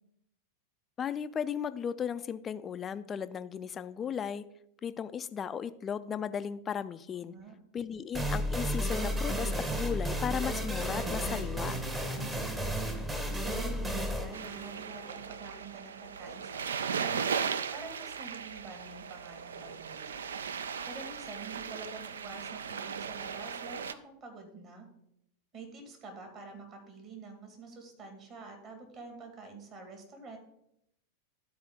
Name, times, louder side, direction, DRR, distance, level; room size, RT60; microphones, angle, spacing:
voice 1, 1.0-4.5 4.8-7.3 7.7-11.8, left 8 dB, 25° left, 13 dB, 0.4 m, -36 dB
voice 2, 7.2-7.5 12.1-12.9 13.3-17.3 17.7-20.2 20.8-24.9 25.5-30.4, right 3 dB, 35° right, 4 dB, 2.0 m, -47 dB
sound 1, 8.1-15.6, equal, 15° right, 1.0 m, -33 dB
sound 2, 14.3-23.9, right 6 dB, 65° right, 0.3 m, -37 dB
12.5 x 4.3 x 3.7 m, 0.77 s
figure-of-eight pair, 90°, 0 cm